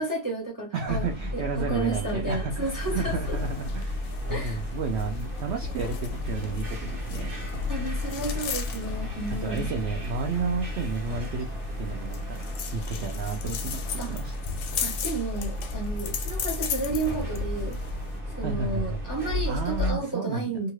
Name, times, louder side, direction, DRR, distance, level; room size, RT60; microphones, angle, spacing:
voice 1, 0.0-3.4 4.3-4.6 7.7-9.7 14.0-14.1 14.8-17.8 18.3-20.7, right 3 dB, 20° right, 0.5 m, -32 dB
voice 2, 0.7-7.3 9.4-11.5 11.8-14.3 18.4-19.0 19.5-20.6, right 5 dB, 65° right, 0.6 m, -32 dB
sound 1, 0.9-19.9, left 1 dB, 45° right, 1.0 m, -34 dB
sound 2, 2.6-18.2, left 6 dB, 90° left, 1.1 m, -36 dB
2.7 x 2.4 x 3.0 m
omnidirectional pair, 1.6 m